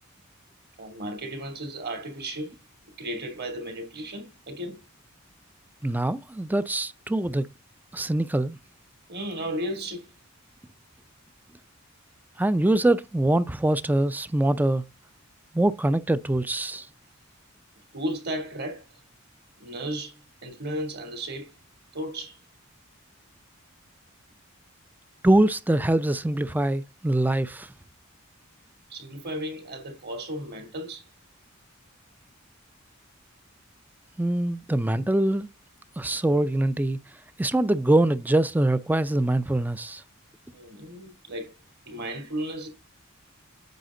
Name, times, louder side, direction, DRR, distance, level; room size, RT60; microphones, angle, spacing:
voice 1, 0.8-2.6 3.0-4.8 9.1-10.1 17.9-19.0 19.6-21.5 21.9-22.4 28.9-31.0 40.5-41.6 41.9-42.7, right 1 dB, 50° right, 2.9 m, -34 dB
voice 2, 5.8-7.5 7.9-8.6 12.4-14.8 15.5-16.9 25.2-27.7 34.2-35.5 36.0-37.0 37.4-40.0, right 1 dB, 10° right, 0.4 m, -23 dB
9.3 x 6.4 x 3.8 m
head